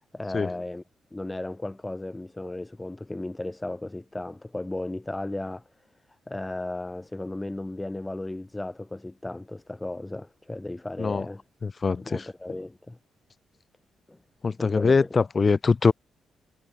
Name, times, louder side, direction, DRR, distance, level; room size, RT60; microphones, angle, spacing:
voice 1, 0.1-0.8 1.1-5.6 6.3-11.4 12.0-13.0 14.1-14.2 14.6-15.1, left 2 dB, 15° left, 3.5 m, -35 dB
voice 2, 11.6-12.2 14.4-15.9, left 4 dB, 35° left, 1.0 m, -23 dB
cardioid pair, 75°, 0 cm